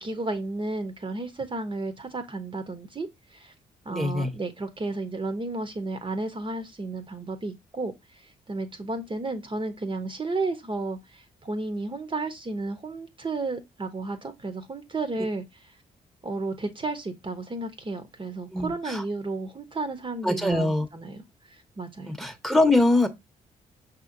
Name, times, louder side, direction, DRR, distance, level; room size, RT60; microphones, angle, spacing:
voice 1, 0.0-3.5 3.8-15.7 16.2-21.2 21.5-22.1, right 3 dB, 30° right, 0.9 m, -33 dB
voice 2, 3.9-4.3 18.5-19.0 20.2-20.9 22.1-23.1, left 2 dB, ahead, 0.9 m, -23 dB
5.6 x 2.8 x 2.6 m
hypercardioid pair, 45°, 17 cm